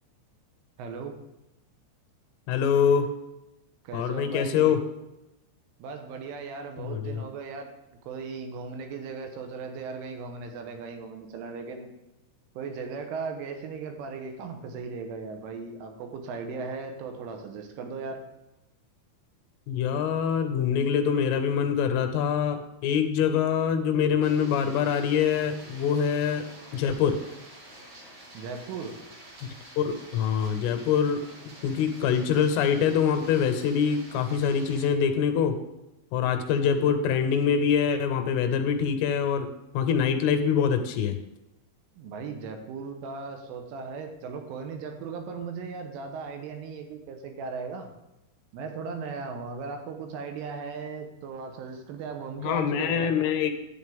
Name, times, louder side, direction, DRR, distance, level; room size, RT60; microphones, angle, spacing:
voice 1, 0.8-1.1 3.8-4.8 5.8-7.7 8.0-11.9 12.6-18.2 28.3-28.9 42.0-47.9 48.5-53.1, right 5 dB, 80° right, 4 dB, 3.4 m, -37 dB
voice 2, 2.5-3.1 3.9-4.8 6.8-7.2 19.7-26.5 26.7-27.2 29.8-31.2 31.6-35.6 36.1-39.5 39.7-41.2 52.4-53.5, left 7 dB, 80° left, 7 dB, 3.2 m, -24 dB
sound 1, 24.2-34.9, right 1 dB, 45° right, 2.7 m, -48 dB
11.0 x 9.2 x 3.5 m, 0.96 s
omnidirectional pair, 5.8 m